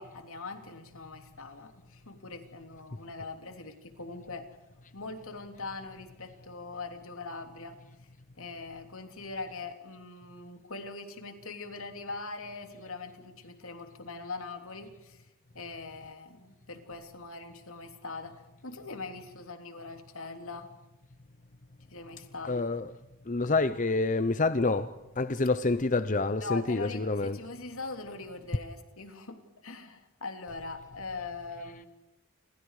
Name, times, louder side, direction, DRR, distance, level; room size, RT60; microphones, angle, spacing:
voice 1, 0.0-4.5 4.9-7.8 8.4-15.2 15.5-20.7 21.9-22.7 26.4-31.9, left 3 dB, 70° left, 3.1 m, -42 dB
voice 2, 22.5-22.9 23.3-27.4, left 3 dB, 35° left, 0.7 m, -28 dB
29.5 x 26.5 x 4.9 m
head